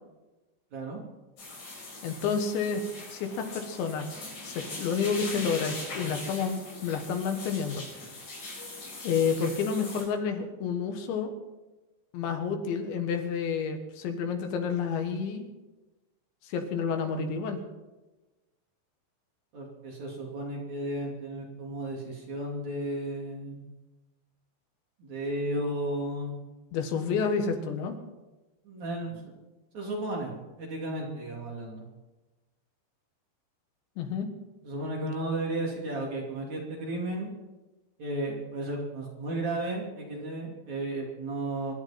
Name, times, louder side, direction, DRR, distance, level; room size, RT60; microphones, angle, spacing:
voice 1, 0.7-1.0 19.5-23.6 25.0-26.4 27.3-27.8 28.6-29.3 29.7-31.9 34.6-37.3 38.0-41.8, right 1 dB, 45° right, -2 dB, 3.6 m, -34 dB
sound 1, 1.4-10.0, left 2 dB, 60° left, 8.0 m, -41 dB
voice 2, 2.0-2.8 3.1-4.1 4.4-7.8 9.0-11.3 12.1-15.5 16.4-17.6 26.7-28.0 34.0-34.3, left 6 dB, 75° left, 6 dB, 3.8 m, -30 dB
26.5 x 11.5 x 4.4 m, 1.1 s
omnidirectional pair, 5.4 m